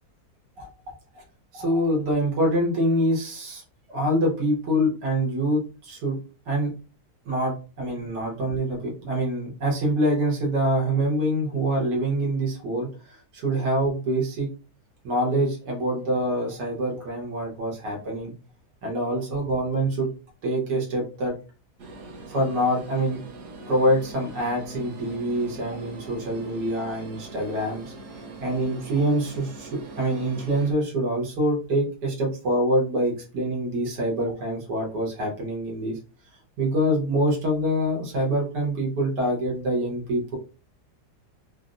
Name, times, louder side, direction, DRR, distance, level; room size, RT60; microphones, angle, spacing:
voice 1, 1.5-3.6 3.9-6.2 6.5-6.7 7.3-14.5 15.0-18.3 18.8-20.1 20.4-21.3 22.3-23.2 23.7-36.0 36.6-40.4, right 1 dB, 90° right, -1 dB, 1.7 m, -25 dB
sound 1, 21.8-30.7, right 3 dB, 60° right, 0.8 m, -42 dB
4.0 x 2.0 x 2.5 m, 0.35 s
omnidirectional pair, 1.7 m